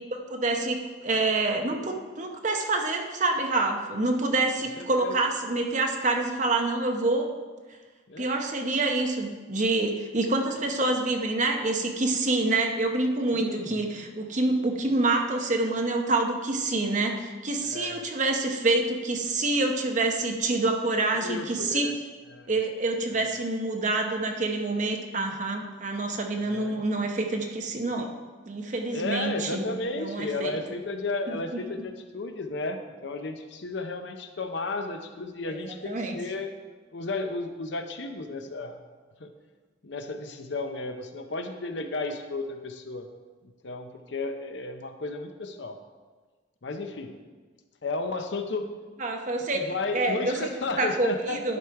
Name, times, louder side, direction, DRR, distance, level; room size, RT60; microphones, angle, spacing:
voice 1, 0.1-7.3 8.2-21.9 22.5-28.1 28.5-30.5 31.3-31.4 35.5-36.2 49.0-50.5 50.8-51.6, right 2 dB, 40° right, 3 dB, 0.8 m, -27 dB
voice 2, 4.8-5.1 8.1-8.4 13.3-14.1 17.7-18.1 21.1-21.9 22.3-22.5 23.1-23.3 26.4-26.8 28.9-36.5 36.9-38.8 39.2-39.3 39.8-43.1 43.6-45.8 46.6-47.1 47.8-48.7 49.5-51.6, left 3 dB, 65° left, 6 dB, 0.7 m, -33 dB
11.0 x 5.0 x 4.6 m, 1.4 s
head